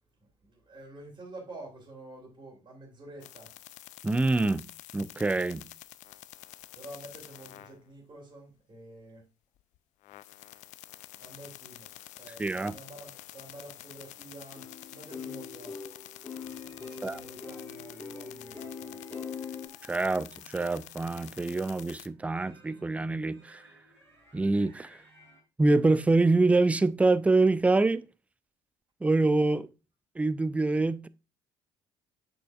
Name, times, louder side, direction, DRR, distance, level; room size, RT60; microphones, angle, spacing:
voice 1, 0.2-3.5 6.7-9.3 11.1-15.8 16.8-19.2, right 1 dB, 35° right, 3.5 m, -49 dB
sound 1, 3.2-7.8 9.7-9.8 10.0-22.1, left 15 dB, 55° left, 0.4 m, -49 dB
voice 2, 4.0-4.6 4.9-5.7 12.4-12.7 17.0-17.2 19.8-23.7 24.3-25.0 25.6-28.1 29.0-29.7 30.2-31.1, right 3 dB, 10° right, 0.4 m, -25 dB
sound 2, 14.5-19.7, left 5 dB, 15° left, 2.3 m, -42 dB
sound 3, 16.3-25.4, right 1 dB, 80° right, 2.8 m, -59 dB
7.8 x 6.1 x 2.4 m
figure-of-eight pair, 50°, 14 cm